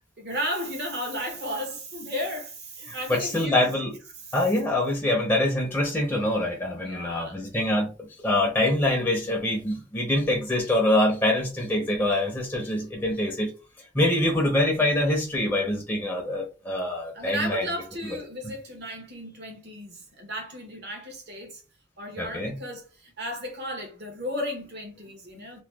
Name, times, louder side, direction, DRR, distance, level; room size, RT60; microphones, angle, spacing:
voice 1, 0.2-3.6 4.2-4.4 6.8-7.4 17.1-21.6 22.0-25.6, equal, 55° right, 1.1 m, -34 dB
voice 2, 2.9-4.0 4.3-13.5 13.9-17.6 18.4-18.5 22.2-22.6, left 1 dB, 10° left, 0.5 m, -25 dB
2.9 x 2.1 x 3.3 m
head